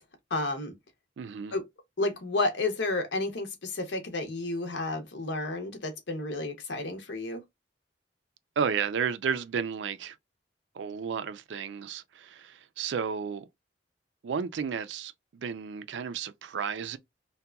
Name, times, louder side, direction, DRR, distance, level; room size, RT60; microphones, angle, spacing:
voice 1, 0.3-0.7 1.5-1.6 2.0-7.4, left 2 dB, 80° left, 0.8 m, -31 dB
voice 2, 1.2-1.5 8.6-10.2 10.7-13.5 14.2-17.0, right 6 dB, 80° right, 0.4 m, -32 dB
2.8 x 2.2 x 2.2 m
head